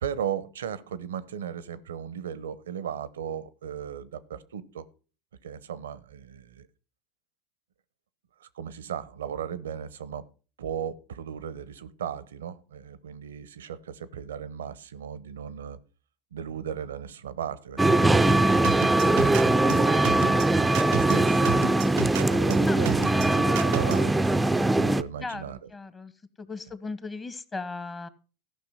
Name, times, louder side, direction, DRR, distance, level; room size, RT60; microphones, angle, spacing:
voice 1, 0.0-4.9 5.4-6.7 8.4-10.3 10.6-15.8 16.3-20.4 20.7-21.7 22.1-24.4 24.8-25.6, right 8 dB, 85° right, 0.8 m, -36 dB
sound 1, 17.8-25.0, right 2 dB, 10° right, 0.5 m, -21 dB
sound 2, 18.6-24.1, right 15 dB, 65° right, 0.4 m, -32 dB
voice 2, 22.7-23.6 25.2-26.1 26.4-28.1, left 3 dB, 20° left, 1.1 m, -37 dB
14.0 x 5.8 x 5.6 m
hypercardioid pair, 90°, 0 cm